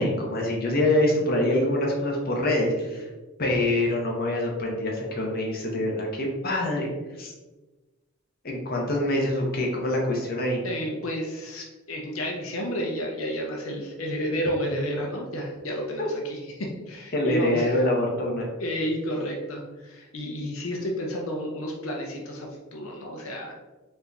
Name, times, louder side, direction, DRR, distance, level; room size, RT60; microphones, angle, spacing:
voice 1, 0.0-3.1 3.4-6.9 7.2-7.3 8.4-10.6 17.1-18.5, left 1 dB, 45° left, -1 dB, 0.9 m, -25 dB
voice 2, 10.6-17.8 18.6-23.5, equal, 85° left, 0 dB, 0.6 m, -31 dB
4.3 x 2.6 x 3.4 m, 1.2 s
head